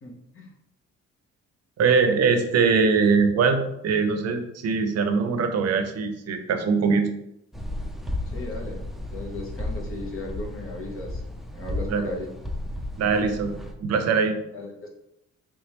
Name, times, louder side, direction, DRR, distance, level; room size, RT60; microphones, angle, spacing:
voice 1, 0.0-0.5 8.3-8.8 9.1-11.2 11.5-12.3 14.5-14.9, left 2 dB, 45° left, 0 dB, 1.0 m, -36 dB
voice 2, 1.8-7.1 11.9-12.0 13.0-13.5 13.8-14.4, right 5 dB, 60° right, 7 dB, 0.6 m, -22 dB
sound 1, 7.5-13.7, left 1 dB, ahead, 0.4 m, -34 dB
3.4 x 3.1 x 3.0 m, 0.80 s
cardioid pair, 90°, 30 cm